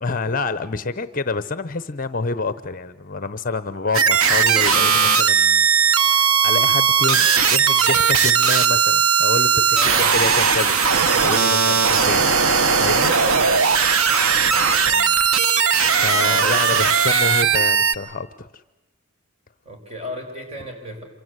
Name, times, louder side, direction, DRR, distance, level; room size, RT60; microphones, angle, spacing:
voice 1, 0.0-6.0 6.4-10.8 11.2-12.3 12.8-13.1 16.0-18.6, left 3 dB, 40° left, 14 dB, 0.8 m, -27 dB
sound 1, 3.9-17.9, right 6 dB, 90° right, 1.1 m, -17 dB
voice 2, 9.7-10.1 11.6-12.0 14.3-15.2 16.2-16.7 17.1-17.2 19.7-21.0, left 1 dB, 30° right, 2 dB, 5.3 m, -37 dB
27.0 x 24.0 x 8.1 m, 1.0 s
head